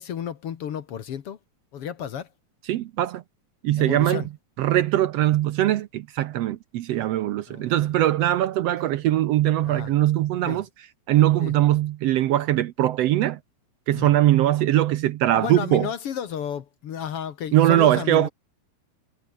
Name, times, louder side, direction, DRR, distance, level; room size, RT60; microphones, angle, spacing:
voice 1, 0.0-1.4 1.7-2.3 3.8-4.3 7.5-8.0 9.6-9.9 10.5-10.6 11.4-11.5 13.9-14.1 15.3-18.3, left 9 dB, 55° left, 2.1 m, -33 dB
voice 2, 2.7-3.2 3.6-4.2 4.6-10.7 11.1-13.4 13.9-15.9 17.5-18.3, right 13 dB, 70° right, 1.7 m, -21 dB
omnidirectional pair, 3.4 m